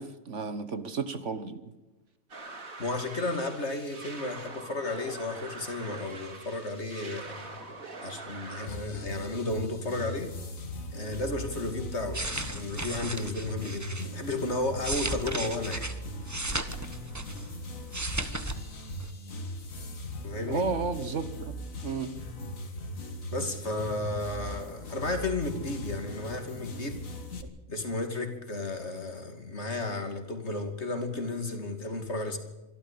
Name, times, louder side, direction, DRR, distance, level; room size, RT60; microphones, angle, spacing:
voice 1, 0.0-1.7 20.5-21.3 21.8-22.1, right 4 dB, 60° right, 1.6 m, -32 dB
sound 1, 2.3-8.7, right 3 dB, 75° right, 3.1 m, -44 dB
voice 2, 2.8-7.6 8.0-10.3 10.9-15.9 20.2-20.7 23.3-27.0 27.7-32.4, left 2 dB, 50° left, 3.1 m, -33 dB
sound 2, 8.7-27.4, equal, 70° left, 2.3 m, -39 dB
sound 3, 11.9-14.1 14.6-17.5 17.8-18.6 18.9-19.1, right 2 dB, 15° right, 1.2 m, -35 dB
25.0 x 13.0 x 8.5 m
omnidirectional pair, 1.4 m